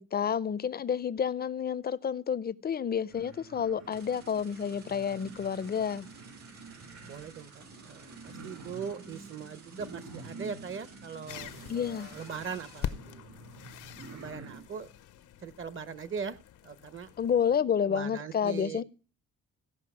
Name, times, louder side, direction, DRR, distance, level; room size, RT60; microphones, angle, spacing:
voice 1, 0.0-6.1 11.7-12.1 17.2-18.8, left 7 dB, 30° left, 0.5 m, -30 dB
sound 1, 3.1-14.6, right 3 dB, 65° right, 4.3 m, -48 dB
sound 2, 3.9-12.9, right 4 dB, 85° right, 6.2 m, -56 dB
voice 2, 7.0-13.3 14.1-14.9 15.4-16.4 16.6-17.1 17.8-18.8, right 6 dB, 40° right, 1.0 m, -40 dB
Caçadors de sons - Estranya revolució, 11.3-17.6, left 10 dB, 80° left, 0.8 m, -44 dB
16.0 x 5.5 x 6.1 m
cardioid pair, 90°, 30 cm